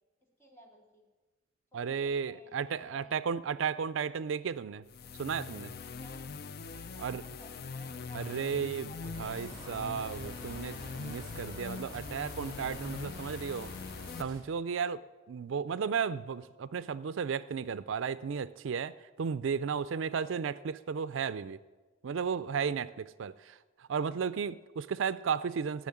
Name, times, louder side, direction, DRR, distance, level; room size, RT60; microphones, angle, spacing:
voice 1, 0.4-1.0 1.7-1.9 2.3-3.1 5.9-6.2 6.6-9.8, equal, 15° left, 2.9 m, -57 dB
voice 2, 1.7-4.8 5.2-5.7 7.0-7.2 8.1-13.7 14.2-15.0 15.3-21.6 22.0-23.6 23.9-25.9, right 6 dB, 75° right, 0.4 m, -34 dB
sound 1, 4.9-14.2, left 5 dB, 50° left, 0.5 m, -42 dB
sound 2, 9.1-14.4, right 1 dB, 20° right, 2.2 m, -48 dB
16.0 x 6.3 x 9.8 m
head